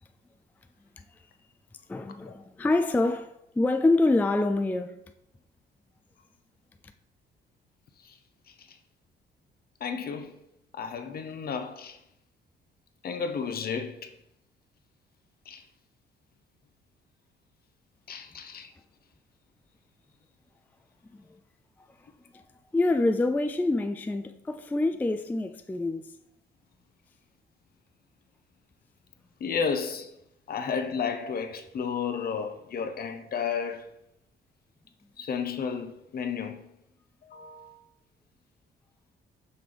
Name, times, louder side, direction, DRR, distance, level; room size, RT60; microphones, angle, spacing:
voice 1, 1.9-5.0 22.3-22.4 22.7-26.1, left 2 dB, 10° left, 0.3 m, -26 dB
voice 2, 9.8-10.3 10.7-12.0 13.0-14.1 15.5-15.6 18.1-18.7 29.4-30.1 30.5-33.8 35.2-36.6 37.3-37.7, left 6 dB, 50° left, 0.7 m, -32 dB
5.8 x 5.5 x 3.4 m
cardioid pair, 90°, 20 cm